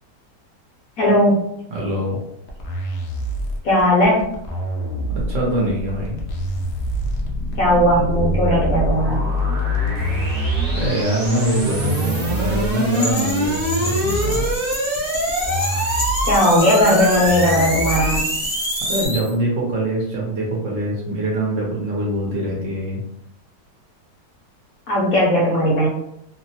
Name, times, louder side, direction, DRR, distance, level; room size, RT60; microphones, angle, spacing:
voice 1, 1.0-1.5 3.6-4.3 7.6-9.2 16.2-18.2 24.9-25.9, equal, 65° left, -4 dB, 0.9 m, -17 dB
voice 2, 1.7-2.2 5.1-6.2 10.7-14.5 18.8-23.0, right 1 dB, 60° right, -3 dB, 0.8 m, -24 dB
sound 1, 2.5-18.5, right 1 dB, 85° left, 0.6 m, -27 dB
sound 2, 5.4-19.3, equal, 40° right, 0.9 m, -25 dB
sound 3, 12.9-19.1, left 1 dB, 10° left, 0.7 m, -29 dB
2.8 x 2.0 x 2.7 m, 0.77 s
omnidirectional pair, 1.9 m